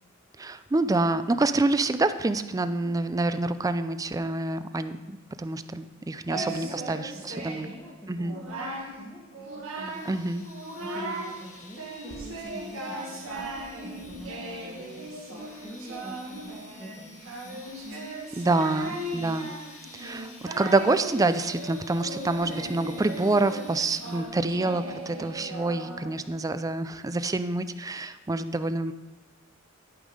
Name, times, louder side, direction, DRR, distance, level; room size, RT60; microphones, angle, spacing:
voice 1, 0.4-7.7 8.1-8.3 10.1-10.4 18.4-19.5 19.9-20.3 20.6-28.9, right 2 dB, 15° right, 12 dB, 0.4 m, -27 dB
voice 2, 6.3-10.2 10.8-16.5 16.8-18.0 18.4-19.5, equal, 15° left, -4 dB, 1.2 m, -46 dB
Singing, 6.3-7.8 8.2-8.9 9.3-10.1 10.4-11.3 11.8-26.3, right 1 dB, 85° right, 1.7 m, -37 dB
sound 1, 9.9-24.6, left 1 dB, 35° left, 1.3 m, -50 dB
12.0 x 5.4 x 5.0 m, 1.2 s
head